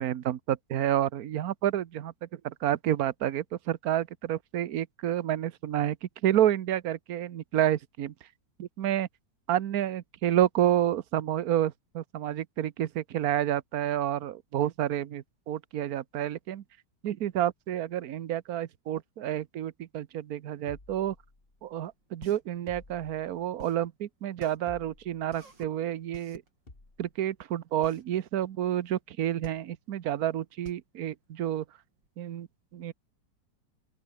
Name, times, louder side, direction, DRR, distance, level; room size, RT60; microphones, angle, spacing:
voice 1, 0.0-8.1 8.6-9.1 9.5-16.6 17.0-21.1 21.6-26.4 27.0-31.6 32.2-32.5 32.7-32.9, right 11 dB, 60° right, 1.3 m, -29 dB
sound 1, 20.7-21.8 22.7-23.6 24.7-25.4 26.7-27.1, left 2 dB, 30° left, 3.7 m, -52 dB
sound 2, 22.0-32.1, right 3 dB, 85° right, 5.7 m, -50 dB
open air
omnidirectional pair, 1.9 m